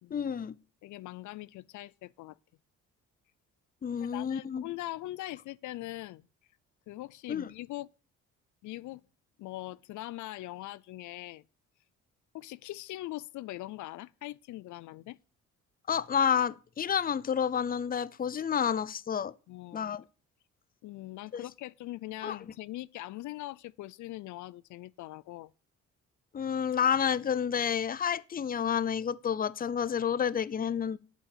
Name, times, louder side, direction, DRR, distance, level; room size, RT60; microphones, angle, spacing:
voice 1, 0.1-0.5 3.8-4.6 7.3-7.5 15.9-19.3 19.7-20.0 21.3-21.4 22.2-22.4 26.3-31.0, left 8 dB, 30° left, 0.6 m, -29 dB
voice 2, 0.8-2.4 4.0-6.3 6.9-7.9 8.6-9.0 9.4-11.4 12.3-15.2 19.5-19.9 20.8-25.5, left 16 dB, 75° left, 0.5 m, -41 dB
8.9 x 7.6 x 6.7 m
cardioid pair, 90°, 30 cm